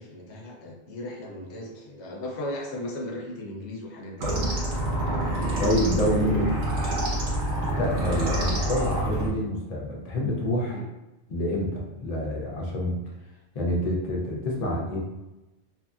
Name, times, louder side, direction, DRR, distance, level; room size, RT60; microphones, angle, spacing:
voice 1, 0.0-4.3 10.7-10.8, left 1 dB, 75° left, -1 dB, 0.9 m, -36 dB
sound 1, 4.2-9.3, right 1 dB, 70° right, 1.1 m, -26 dB
voice 2, 5.6-6.5 7.6-10.8 11.3-13.0 13.5-15.0, left 1 dB, 45° left, -2 dB, 0.6 m, -27 dB
2.9 x 2.6 x 2.3 m, 1.0 s
omnidirectional pair, 1.2 m